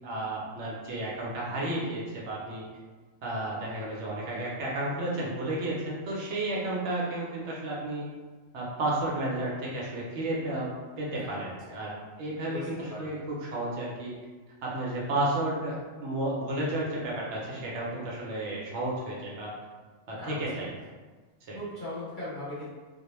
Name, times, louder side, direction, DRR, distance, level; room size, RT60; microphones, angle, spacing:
voice 1, 0.0-2.6 3.2-8.1 8.5-10.7 11.0-14.1 14.6-19.5 20.1-20.7 21.5-21.6, right 1 dB, 70° right, -4 dB, 0.9 m, -32 dB
voice 2, 11.2-11.8 12.4-13.2 16.6-16.8 20.2-20.7 21.5-22.7, left 1 dB, 45° left, -10 dB, 0.9 m, -40 dB
2.2 x 2.0 x 3.0 m, 1.4 s
omnidirectional pair, 1.3 m